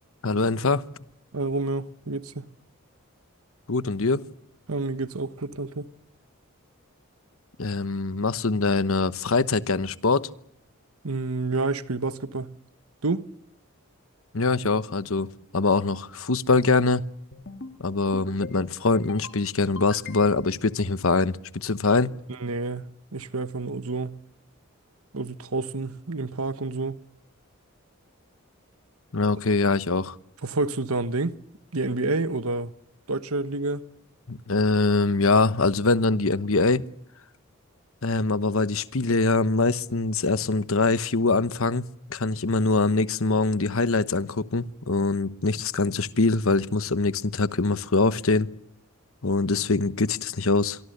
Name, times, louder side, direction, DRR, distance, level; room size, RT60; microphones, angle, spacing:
voice 1, 0.2-0.8 3.7-4.2 7.6-10.3 14.3-15.3 15.5-17.0 17.8-22.1 29.1-30.2 34.3-36.9 38.0-48.5 49.2-50.8, left 3 dB, 70° left, 1.1 m, -23 dB
voice 2, 1.3-2.5 4.7-5.9 11.0-12.6 13.0-13.3 22.4-24.2 25.1-27.0 30.4-31.4 31.7-32.7 33.1-33.8, right 3 dB, 85° right, 1.2 m, -29 dB
sound 1, 17.3-17.8 18.1-18.6 18.9-19.4 19.8-20.5, left 3 dB, 55° left, 2.0 m, -41 dB
26.0 x 23.5 x 6.7 m
head